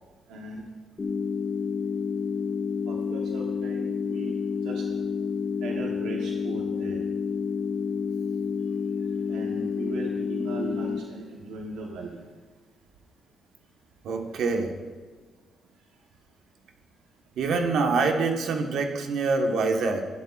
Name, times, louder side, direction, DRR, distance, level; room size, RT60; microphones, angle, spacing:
voice 1, 0.3-0.6 2.9-4.3 4.6-4.8 5.6-7.0 9.3-12.2 14.2-14.3, right 3 dB, 90° right, 0 dB, 1.1 m, -38 dB
sound 1, 1.0-11.0, left 6 dB, 30° left, 1.4 m, -29 dB
voice 2, 14.0-14.7 17.4-20.0, right 4 dB, 75° right, 3 dB, 1.3 m, -25 dB
15.0 x 11.0 x 2.5 m, 1.4 s
cardioid pair, 90°, 0 cm